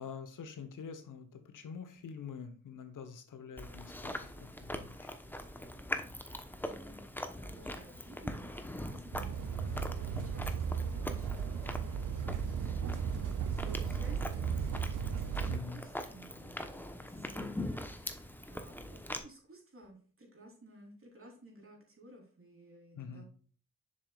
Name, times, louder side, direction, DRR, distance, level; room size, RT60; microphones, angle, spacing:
voice 1, 0.0-5.1 9.6-9.9 15.5-15.9 22.9-23.2, left 6 dB, 80° left, 8 dB, 1.1 m, -46 dB
Chewing mastication, 3.6-19.2, left 1 dB, 5° left, 1.0 m, -42 dB
voice 2, 6.6-7.1 7.4-9.6 10.0-23.3, right 2 dB, 45° right, 0 dB, 3.5 m, -55 dB
sound 1, 9.1-15.6, right 6 dB, 80° right, 0.6 m, -35 dB
7.3 x 6.6 x 2.4 m, 0.42 s
cardioid pair, 60°, 31 cm